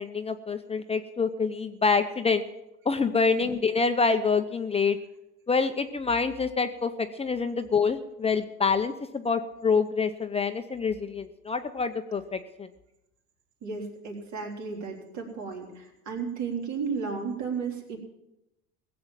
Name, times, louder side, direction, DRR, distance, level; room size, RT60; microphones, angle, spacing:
voice 1, 0.0-2.4 2.9-5.0 5.5-12.7, left 5 dB, 20° left, 8 dB, 0.7 m, -26 dB
voice 2, 13.6-18.0, right 5 dB, 60° right, 1 dB, 3.8 m, -34 dB
17.0 x 7.8 x 7.5 m, 0.90 s
supercardioid pair, 105°, 32 cm